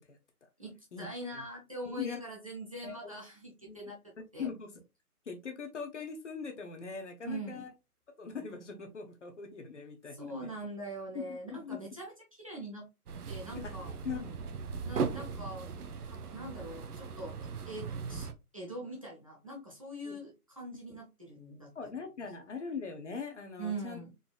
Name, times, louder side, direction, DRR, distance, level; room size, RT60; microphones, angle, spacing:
voice 1, 0.6-4.5 7.2-7.6 10.1-12.9 13.3-13.9 14.8-15.7 16.0-17.3 17.7-21.7 23.6-24.1, right 1 dB, 25° right, -3 dB, 0.6 m, -43 dB
voice 2, 1.9-2.2 2.8-3.1 3.6-3.9 4.4-4.8 5.3-7.7 8.2-10.5 11.1-11.2 11.5-11.8 13.6-13.7 14.0-14.4 20.0-20.1 21.7-24.0, left 5 dB, 50° left, 5 dB, 0.9 m, -41 dB
sound 1, 13.1-18.3, right 5 dB, 75° right, 0.7 m, -38 dB
3.9 x 2.7 x 2.2 m, 0.24 s
figure-of-eight pair, 155°, 46 cm